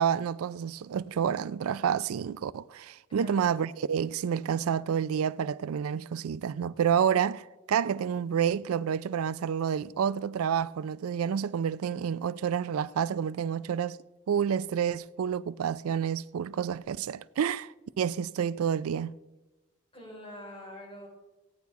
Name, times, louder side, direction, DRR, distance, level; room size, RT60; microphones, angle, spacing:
voice 1, 0.0-14.0 14.3-19.2, right 8 dB, 80° right, 0.4 m, -29 dB
voice 2, 3.1-3.5 19.9-21.1, left 1 dB, 25° left, 4.5 m, -45 dB
16.5 x 9.3 x 4.1 m
head